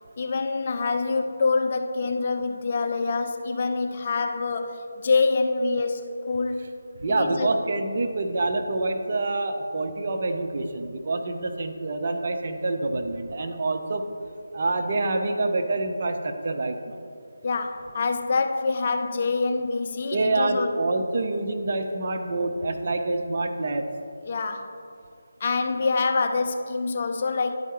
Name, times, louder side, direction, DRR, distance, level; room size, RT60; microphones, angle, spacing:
voice 1, 0.2-6.7 7.1-7.5 17.4-20.7 24.2-24.7 25.4-27.5, left 4 dB, 40° left, 6 dB, 0.5 m, -26 dB
voice 2, 7.0-14.0 14.5-17.0 20.1-23.9, right 2 dB, 45° right, 5 dB, 0.6 m, -26 dB
11.0 x 4.5 x 2.9 m, 2.4 s
figure-of-eight pair, 155°, 0 cm